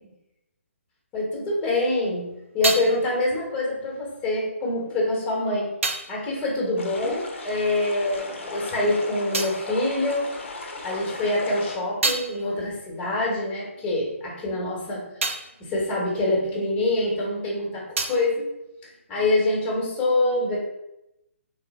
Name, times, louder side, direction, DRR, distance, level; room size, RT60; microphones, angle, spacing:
voice 1, 1.1-2.3 2.5-5.7 6.1-10.3 10.8-15.3 15.6-18.5 19.1-20.6, left 2 dB, 15° left, -4 dB, 1.2 m, -25 dB
sound 1, 1.9-7.8 8.1-10.8 11.2-17.2 17.5-19.5, right 3 dB, 70° right, 0.5 m, -34 dB
sound 2, 6.8-11.8, left 2 dB, 65° left, 0.7 m, -36 dB
3.3 x 2.5 x 4.1 m, 0.88 s
figure-of-eight pair, 140°, 7 cm